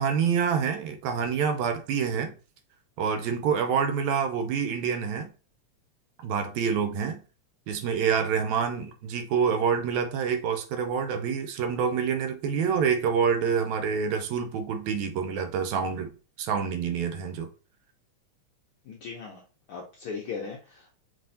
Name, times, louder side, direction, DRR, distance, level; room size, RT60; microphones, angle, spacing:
voice 1, 0.0-2.3 3.0-5.3 6.2-7.2 7.7-17.5, right 6 dB, 85° right, 1.9 m, -27 dB
voice 2, 18.8-19.4 19.7-20.9, left 5 dB, 75° left, 1.2 m, -38 dB
5.5 x 3.1 x 2.7 m
omnidirectional pair, 3.3 m